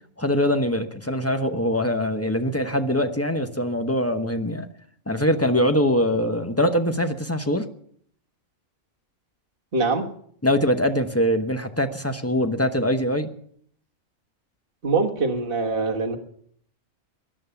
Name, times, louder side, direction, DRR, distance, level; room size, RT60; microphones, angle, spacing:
voice 1, 0.2-4.7 5.1-7.6 10.4-13.3, equal, 10° left, 7 dB, 1.0 m, -23 dB
voice 2, 9.7-10.0 14.8-16.2, right 3 dB, 45° right, 0 dB, 1.7 m, -23 dB
18.0 x 11.5 x 7.0 m, 0.63 s
omnidirectional pair, 1.4 m